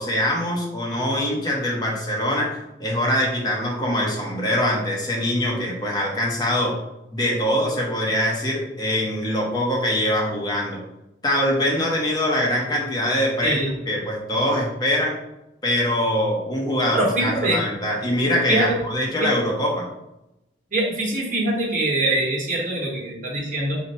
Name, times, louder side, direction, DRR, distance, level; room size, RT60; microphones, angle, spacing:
voice 1, 0.0-6.7 7.1-10.8 11.2-15.2 15.6-19.9, left 1 dB, 20° left, -2 dB, 0.8 m, -23 dB
voice 2, 16.9-17.6 18.5-18.6 19.2-19.3 20.7-23.8, right 2 dB, 45° right, -4 dB, 1.1 m, -23 dB
4.2 x 2.1 x 4.2 m, 0.91 s
head